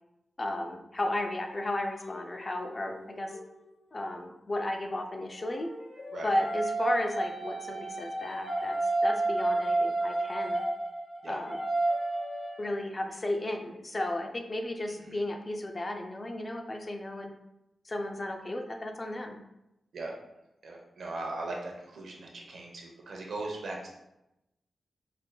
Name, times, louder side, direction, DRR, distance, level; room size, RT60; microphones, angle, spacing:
voice 1, 0.4-3.3 3.9-5.7 6.2-8.8 9.0-10.6 11.3-11.6 12.6-17.3 17.8-19.4, left 1 dB, 30° left, 4 dB, 0.4 m, -34 dB
sound 1, 1.3-3.4 5.4-12.7, right 2 dB, 45° left, 0.8 m, -32 dB
voice 2, 20.6-23.9, right 2 dB, 70° right, 0 dB, 0.8 m, -38 dB
5.0 x 2.8 x 2.2 m, 0.88 s
wide cardioid pair, 125°, 0 cm